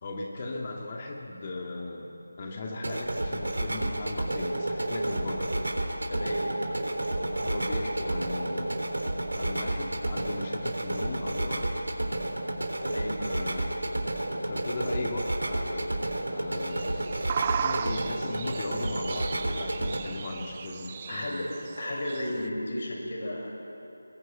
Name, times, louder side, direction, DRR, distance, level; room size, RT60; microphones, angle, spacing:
voice 1, 0.0-2.1 2.4-5.7 6.9-8.9 9.3-11.7 13.2-13.8 14.5-16.0 16.3-17.1 17.5-21.5, left 2 dB, 30° left, 0 dB, 2.1 m, -37 dB
sound 1, 2.7-20.0, right 1 dB, 70° right, 3.6 m, -31 dB
voice 2, 6.1-6.4 12.8-13.2 21.1-21.5 21.8-23.5, left 1 dB, 50° left, -1 dB, 6.6 m, -33 dB
sound 2, 16.5-22.5, right 7 dB, 25° right, 0.4 m, -36 dB
21.5 x 21.5 x 9.0 m, 2.8 s
figure-of-eight pair, 165°, 0 cm